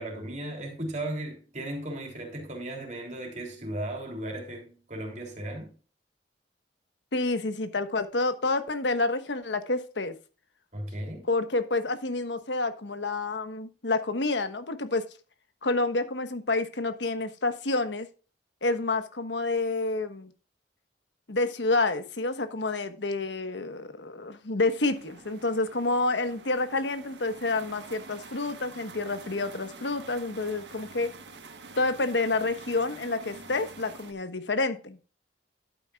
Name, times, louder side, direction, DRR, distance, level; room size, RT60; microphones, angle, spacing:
voice 1, 0.0-5.7 10.7-11.3, right 1 dB, 40° right, 3.4 m, -36 dB
voice 2, 7.1-10.1 11.3-15.0 15.6-18.1 18.6-20.3 21.3-31.1 31.8-35.0, left 2 dB, 85° left, 1.3 m, -28 dB
sound 1, 24.7-34.1, right 3 dB, 80° right, 1.5 m, -47 dB
11.5 x 9.1 x 2.4 m
head